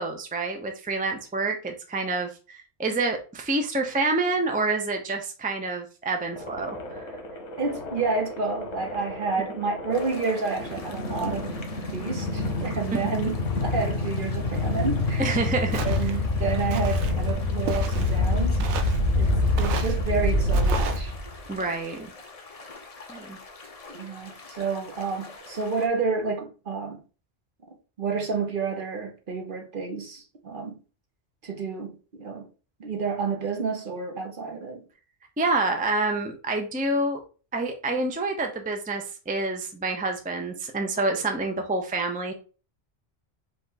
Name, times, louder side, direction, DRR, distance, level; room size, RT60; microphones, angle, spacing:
voice 1, 0.0-6.7 7.0-7.1 12.9-13.1 15.2-15.8 21.5-22.1 23.1-23.4 35.4-37.2 37.5-42.3, right 2 dB, 10° right, 0.5 m, -27 dB
sound 1, 6.3-21.4, left 2 dB, 90° left, 1.3 m, -27 dB
voice 2, 7.6-11.5 11.9-15.4 15.8-18.6 19.1-21.1 21.6-21.7 23.9-27.0 28.0-30.8 31.4-32.4 32.8-34.8, right 4 dB, 50° right, 1.0 m, -30 dB
sound 2, 9.9-25.9, left 3 dB, 40° left, 0.7 m, -45 dB
Walk footsteps, 15.7-16.2 16.7-17.1 17.7-18.2 18.6-19.0 19.6-20.0 20.5-21.0, right 6 dB, 85° right, 0.9 m, -33 dB
4.9 x 2.5 x 3.9 m
omnidirectional pair, 1.1 m